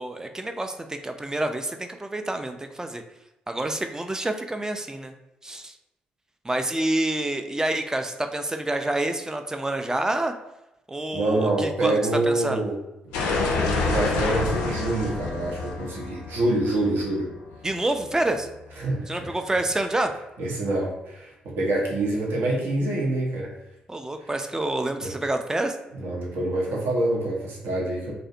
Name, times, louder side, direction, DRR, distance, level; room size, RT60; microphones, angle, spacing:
voice 1, 0.0-3.0 3.5-5.1 5.4-5.7 6.4-10.3 10.9-12.0 12.3-12.6 17.6-18.5 19.1-20.1 23.9-25.8, right 1 dB, 15° right, 6 dB, 0.3 m, -27 dB
voice 2, 11.1-12.8 13.3-17.3 18.8-19.3 20.4-23.5 25.0-25.1 26.0-28.1, right 2 dB, 65° right, -2 dB, 0.6 m, -26 dB
sound 1, 13.1-17.9, left 3 dB, 75° left, 0.3 m, -28 dB
2.4 x 2.0 x 2.6 m, 0.92 s
hypercardioid pair, 40°, 4 cm